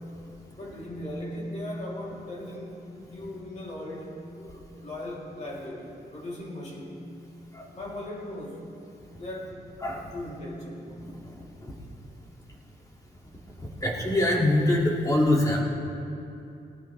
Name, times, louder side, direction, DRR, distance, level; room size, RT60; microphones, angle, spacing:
voice 1, 0.6-7.0 7.7-8.6 9.1-9.6 10.1-10.9, left 1 dB, 45° left, -4 dB, 3.2 m, -38 dB
voice 2, 13.8-15.6, left 1 dB, 20° left, -2 dB, 2.4 m, -23 dB
18.5 x 18.5 x 3.4 m, 2.7 s
wide cardioid pair, 130°, 17 cm